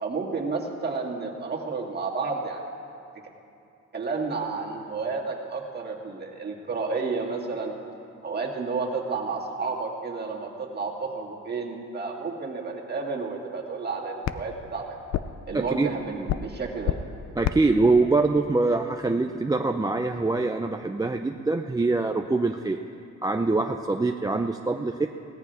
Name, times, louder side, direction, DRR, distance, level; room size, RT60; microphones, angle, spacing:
voice 1, 0.0-2.7 3.9-7.7 8.2-15.0 15.5-17.0, right 4 dB, 35° right, -2 dB, 2.5 m, -31 dB
sound 1, 13.3-19.6, left 10 dB, 60° left, 0.6 m, -34 dB
voice 2, 15.5-15.9 17.4-22.8 23.2-25.1, right 3 dB, 10° right, 4 dB, 0.6 m, -24 dB
19.5 x 17.0 x 3.6 m, 2.7 s
cardioid pair, 90°, 30 cm